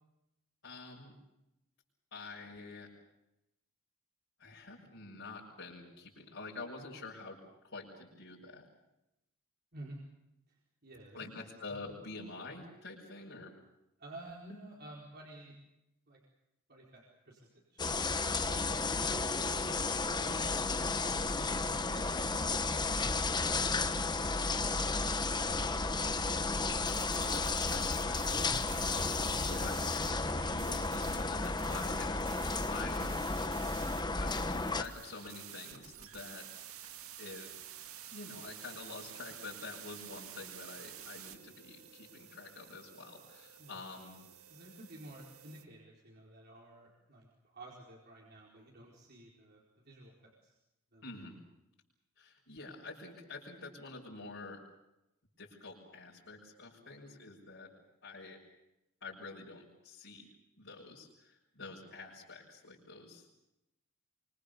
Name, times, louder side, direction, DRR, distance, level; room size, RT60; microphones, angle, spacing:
voice 1, 0.6-1.1 2.1-2.9 4.4-8.7 11.1-13.5 18.5-18.7 25.6-26.0 27.1-28.2 29.4-33.1 34.2-36.5 37.2-37.5 38.1-44.2 51.0-51.4 52.2-54.6 55.4-57.7 58.0-58.4 59.0-60.3 60.6-63.2, left 3 dB, 60° left, -6 dB, 6.6 m, -47 dB
voice 2, 9.7-10.0 10.5-11.3 14.0-15.5 16.1-16.2 16.7-17.8 20.2-23.1 24.5-25.0 25.3-26.4 28.1-28.7 43.6-43.8 44.5-50.6 50.9-51.2, right 1 dB, 45° right, -2 dB, 4.6 m, -53 dB
sound 1, 17.8-34.8, left 3 dB, 20° left, 1.2 m, -33 dB
sound 2, 26.8-45.6, right 10 dB, 70° right, 2.2 m, -50 dB
26.0 x 25.5 x 6.9 m, 0.89 s
head